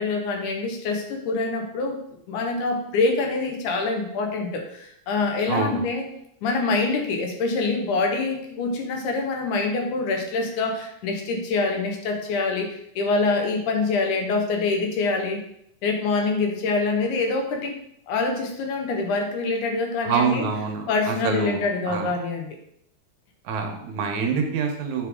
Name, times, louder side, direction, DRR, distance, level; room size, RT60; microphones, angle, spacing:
voice 1, 0.0-2.0 2.3-6.1 6.4-15.4 15.8-17.7 18.1-20.4 20.9-22.6, left 3 dB, 90° left, 3 dB, 2.5 m, -25 dB
voice 2, 5.5-5.8 20.0-22.1 23.5-25.1, right 5 dB, 80° right, 3 dB, 2.3 m, -26 dB
9.0 x 4.0 x 3.6 m, 0.74 s
omnidirectional pair, 3.4 m